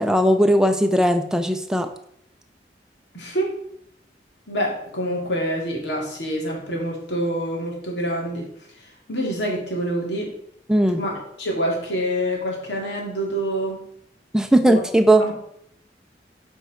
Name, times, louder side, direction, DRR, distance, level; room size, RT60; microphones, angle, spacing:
voice 1, 0.0-1.9 10.7-11.0 14.3-15.2, right 1 dB, 5° right, 6 dB, 0.5 m, -18 dB
voice 2, 3.1-3.5 4.5-8.5 8.8-10.3 11.0-13.9 14.6-14.8 15.2-15.3, equal, 85° left, -1 dB, 2.5 m, -26 dB
7.6 x 4.5 x 5.0 m, 0.70 s
head